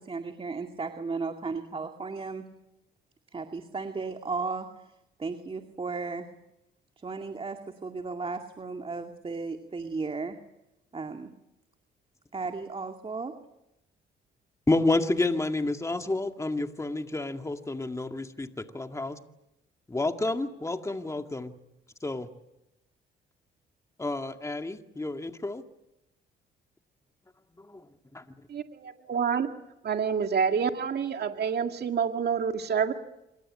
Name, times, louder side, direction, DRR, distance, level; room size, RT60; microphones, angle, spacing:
voice 1, 0.0-2.4 3.3-4.7 5.2-6.3 7.0-10.4 10.9-11.3 12.3-13.3, right 4 dB, 30° right, 5 dB, 2.3 m, -35 dB
voice 2, 14.7-19.2 19.9-21.6 22.0-22.3 24.0-25.6 27.6-27.8 28.1-28.2, left 2 dB, 15° left, 6 dB, 2.0 m, -30 dB
voice 3, 28.5-29.5 29.8-32.9, right 6 dB, 55° right, 5 dB, 2.1 m, -28 dB
27.0 x 24.5 x 8.7 m, 0.89 s
cardioid pair, 90°, 20 cm